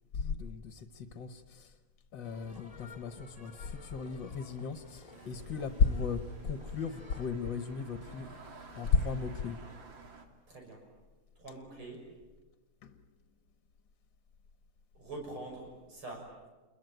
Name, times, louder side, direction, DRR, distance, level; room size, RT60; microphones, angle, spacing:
voice 1, 0.1-1.7 2.1-8.3 8.8-9.6 12.8-13.0, left 5 dB, 65° left, 9 dB, 1.8 m, -34 dB
sound 1, 2.2-7.3, left 3 dB, 15° left, 2.1 m, -54 dB
sound 2, 5.1-10.3, right 4 dB, 65° right, 3.1 m, -52 dB
voice 2, 10.5-10.9 11.4-12.1 14.9-16.5, right 2 dB, 90° right, 1 dB, 7.5 m, -45 dB
29.0 x 22.0 x 9.3 m, 1.2 s
omnidirectional pair, 2.3 m